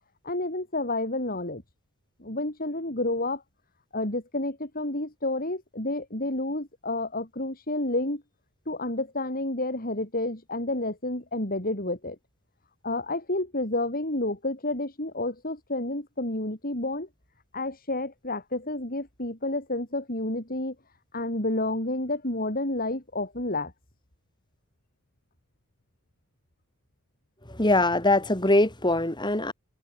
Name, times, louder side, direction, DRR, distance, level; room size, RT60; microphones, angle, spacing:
voice 1, 0.2-1.6 2.2-3.4 3.9-8.2 8.7-12.2 12.8-17.1 17.5-20.7 21.1-23.7, left 2 dB, 40° left, 6.2 m, -30 dB
voice 2, 27.5-29.5, left 2 dB, 20° left, 5.5 m, -22 dB
head